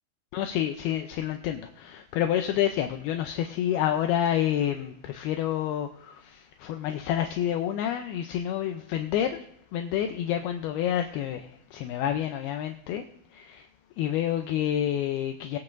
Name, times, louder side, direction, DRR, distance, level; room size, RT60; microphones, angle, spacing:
voice 1, 0.3-9.4 9.7-13.7 14.0-15.6, left 10 dB, 80° left, 6 dB, 2.3 m, -28 dB
21.5 x 8.7 x 2.6 m, 0.74 s
omnidirectional pair, 5.0 m